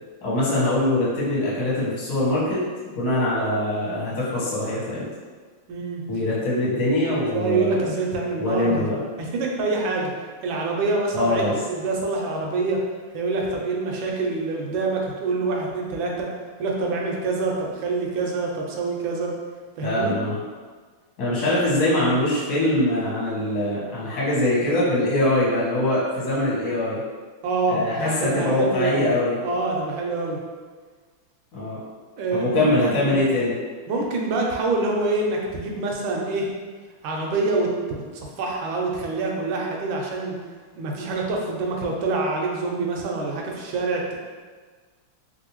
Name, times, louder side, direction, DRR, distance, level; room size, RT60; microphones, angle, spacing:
voice 1, 0.2-2.6 2.9-5.1 6.1-7.9 8.4-9.0 11.1-11.5 19.8-20.4 21.2-27.0 27.7-29.4 31.5-31.8 32.3-33.5, left 1 dB, 50° left, -7 dB, 1.4 m, -23 dB
voice 2, 5.7-6.0 7.3-8.9 9.2-10.1 10.4-12.8 13.1-16.3 16.6-19.3 19.8-20.1 27.4-29.2 29.4-30.4 32.2-33.1 33.9-36.5 37.0-40.3 40.8-44.1, right 3 dB, 75° right, -1 dB, 1.2 m, -26 dB
3.3 x 2.6 x 2.9 m, 1.5 s
omnidirectional pair, 2.4 m